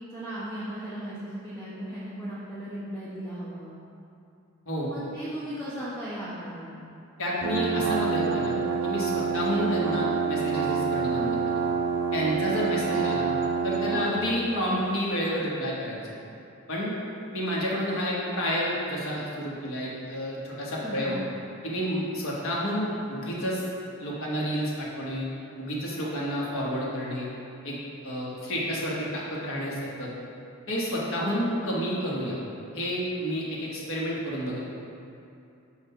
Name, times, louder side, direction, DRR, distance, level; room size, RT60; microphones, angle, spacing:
voice 1, 0.1-3.7 4.8-6.9 13.9-14.1 20.8-21.1, right 1 dB, 5° left, -14 dB, 1.3 m, -37 dB
voice 2, 7.2-11.6 12.1-13.3 13.6-16.0 16.7-16.9 17.3-21.2 21.6-23.6 24.0-25.3 25.6-27.3 27.6-27.8 28.0-30.1 30.7-32.4 32.7-34.6, equal, 60° left, -5 dB, 1.3 m, -30 dB
sound 1, 7.4-14.2, right 6 dB, 60° right, 0.4 m, -27 dB
7.4 x 2.6 x 5.5 m, 2.7 s
head